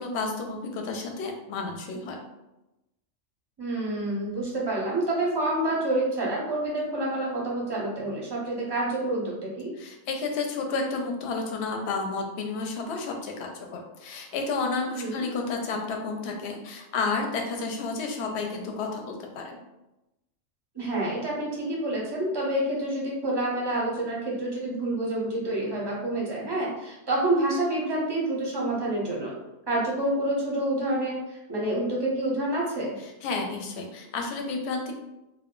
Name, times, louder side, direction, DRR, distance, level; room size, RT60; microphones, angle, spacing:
voice 1, 0.0-2.2 9.8-19.6 33.2-34.9, left 4 dB, 65° left, 2 dB, 0.7 m, -31 dB
voice 2, 3.6-9.7 15.0-15.2 20.7-29.4 29.7-32.9, right 1 dB, 30° right, -4 dB, 0.5 m, -28 dB
2.2 x 2.0 x 3.6 m, 0.96 s
omnidirectional pair, 1.3 m